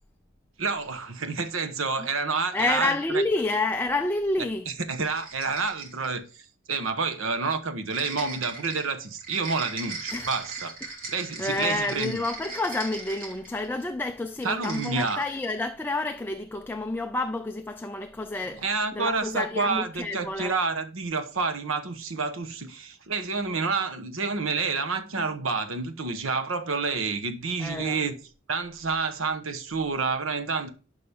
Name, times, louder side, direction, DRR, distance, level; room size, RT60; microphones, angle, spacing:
voice 1, 0.6-3.2 4.4-6.3 6.7-10.7 11.1-12.2 14.4-15.2 18.6-28.2 28.5-30.7, right 4 dB, 75° right, 1.1 m, -29 dB
voice 2, 2.5-4.7 10.1-10.3 11.4-20.5 27.6-28.0, left 2 dB, 10° left, 0.4 m, -29 dB
sound 1, 4.9-6.2 7.9-13.8 14.4-15.4, right 3 dB, 45° right, 2.9 m, -39 dB
11.0 x 5.3 x 3.5 m
head